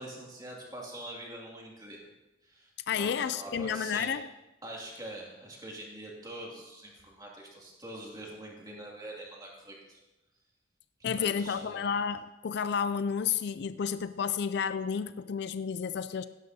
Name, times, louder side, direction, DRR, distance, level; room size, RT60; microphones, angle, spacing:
voice 1, 0.0-2.0 2.4-4.1 4.6-10.0 11.0-11.9, right 1 dB, 20° right, -2 dB, 2.3 m, -44 dB
voice 2, 2.9-4.3 11.0-16.3, left 7 dB, 55° left, 13 dB, 0.3 m, -31 dB
16.5 x 11.5 x 2.8 m, 1.0 s
head